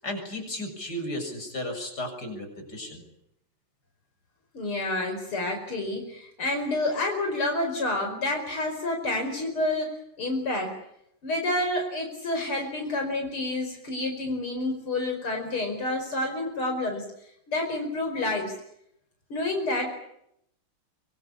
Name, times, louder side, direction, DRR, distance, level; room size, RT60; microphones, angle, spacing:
voice 1, 0.0-3.0, left 1 dB, 45° left, 5 dB, 7.4 m, -34 dB
voice 2, 4.5-10.8 11.2-17.1 17.5-18.6 19.3-19.9, left 2 dB, 75° left, 4 dB, 5.9 m, -29 dB
25.5 x 24.0 x 8.6 m, 0.75 s
omnidirectional pair, 2.4 m